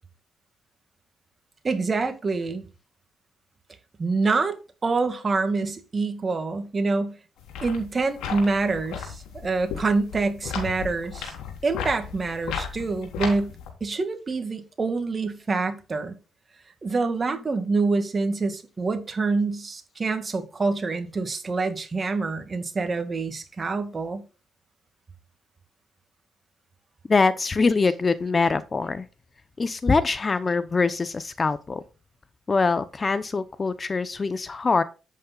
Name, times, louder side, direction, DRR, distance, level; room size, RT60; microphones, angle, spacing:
voice 1, 1.6-2.6 4.0-4.6 4.8-7.2 7.6-11.3 11.6-13.5 13.8-16.2 16.8-24.2, right 3 dB, 35° right, 2.1 m, -26 dB
sound 1, 7.4-13.7, left 7 dB, 90° left, 3.7 m, -35 dB
voice 2, 27.1-29.1 29.6-31.8 32.5-34.8, left 4 dB, 30° left, 0.8 m, -23 dB
10.5 x 8.5 x 2.4 m
cardioid pair, 90°, 0 cm